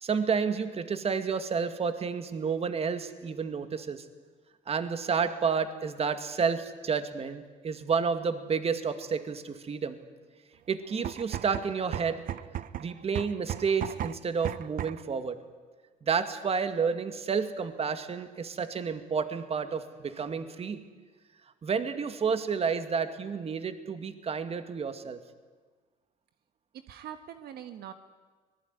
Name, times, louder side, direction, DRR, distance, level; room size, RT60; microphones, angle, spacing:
voice 1, 0.0-4.0 4.7-10.0 10.7-12.2 12.8-15.4 16.0-20.8 21.6-25.2, right 6 dB, 35° right, 9 dB, 2.2 m, -30 dB
sound 1, 10.9-15.1, right 11 dB, 55° right, 0.8 m, -36 dB
voice 2, 26.7-27.9, right 10 dB, 70° right, 9 dB, 1.5 m, -43 dB
25.0 x 19.5 x 9.6 m, 1.4 s
cardioid pair, 110°, 17 cm